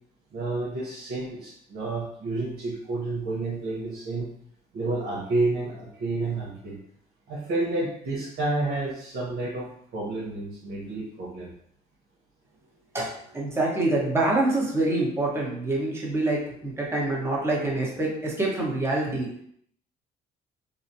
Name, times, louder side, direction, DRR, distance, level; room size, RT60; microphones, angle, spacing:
voice 1, 0.3-4.3 4.7-6.8 7.3-11.5, right 2 dB, 70° right, -6 dB, 1.0 m, -30 dB
voice 2, 12.9-19.3, right 2 dB, 15° right, -3 dB, 1.0 m, -26 dB
3.9 x 2.0 x 2.7 m, 0.67 s
cardioid pair, 110°, 17 cm